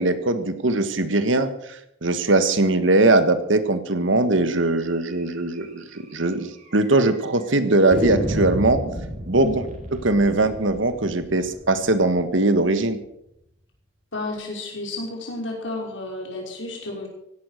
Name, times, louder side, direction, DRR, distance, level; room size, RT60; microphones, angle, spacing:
voice 1, 0.0-1.5 2.0-8.8 9.3-9.5 10.0-13.0, right 2 dB, 85° right, 10 dB, 1.6 m, -20 dB
sound 1, 5.1-5.2 5.5-5.6 5.9-6.0 6.7-7.2 7.9-12.7, equal, 40° right, 3.7 m, -31 dB
voice 2, 14.1-17.1, left 2 dB, 80° left, 0 dB, 5.5 m, -31 dB
16.0 x 12.0 x 6.5 m, 0.79 s
head